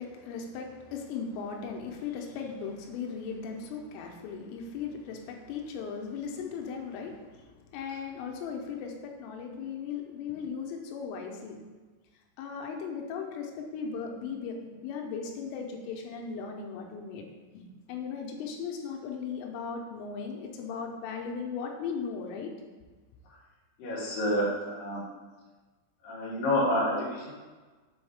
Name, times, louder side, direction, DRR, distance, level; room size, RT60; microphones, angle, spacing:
voice 1, 0.0-11.6 12.4-17.3 17.5-22.5, left 6 dB, 85° left, 2 dB, 3.2 m, -37 dB
voice 2, 23.8-25.0 26.0-27.3, left 1 dB, 70° left, -7 dB, 2.2 m, -28 dB
7.7 x 3.5 x 3.4 m, 1.3 s
omnidirectional pair, 5.8 m